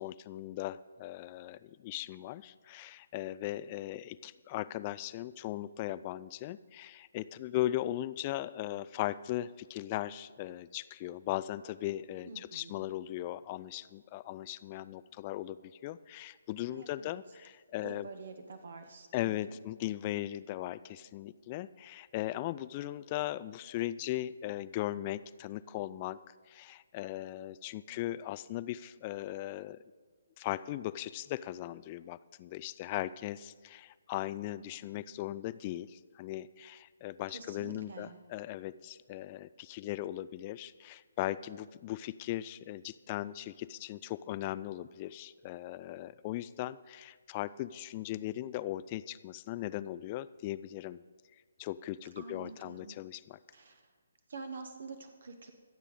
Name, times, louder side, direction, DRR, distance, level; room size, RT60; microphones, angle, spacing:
voice 1, 0.0-18.1 19.1-26.2 26.5-29.8 30.4-51.0 51.6-53.4, left 14 dB, 25° left, 17 dB, 0.3 m, -38 dB
voice 2, 12.3-12.9 16.7-17.1 17.8-19.4 37.3-38.2 52.2-53.0 53.5-53.9 54.3-55.5, right 4 dB, 50° right, 7 dB, 1.0 m, -47 dB
24.5 x 8.1 x 3.8 m, 1.5 s
figure-of-eight pair, 140°, 0 cm